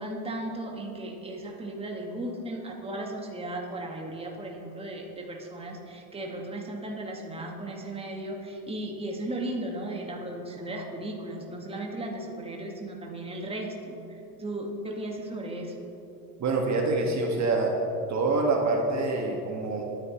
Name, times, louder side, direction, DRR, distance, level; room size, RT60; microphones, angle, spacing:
voice 1, 0.0-15.9, right 1 dB, 10° right, 0 dB, 1.9 m, -36 dB
voice 2, 16.4-17.7 18.1-19.8, right 3 dB, 35° right, 1 dB, 1.9 m, -26 dB
22.5 x 9.8 x 3.2 m, 2.9 s
hypercardioid pair, 80°, 46 cm